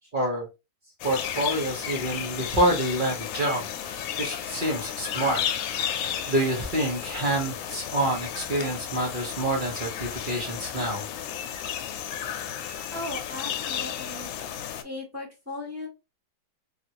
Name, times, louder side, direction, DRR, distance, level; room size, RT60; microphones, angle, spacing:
voice 1, 0.1-0.5 1.0-5.4 6.3-11.1, right 1 dB, 45° right, -1 dB, 0.6 m, -27 dB
sound 1, 1.0-14.8, left 9 dB, 80° left, 1.3 m, -33 dB
voice 2, 12.9-14.3 14.8-15.9, left 2 dB, 10° right, -2 dB, 0.9 m, -37 dB
3.4 x 2.5 x 2.8 m, 0.26 s
omnidirectional pair, 2.1 m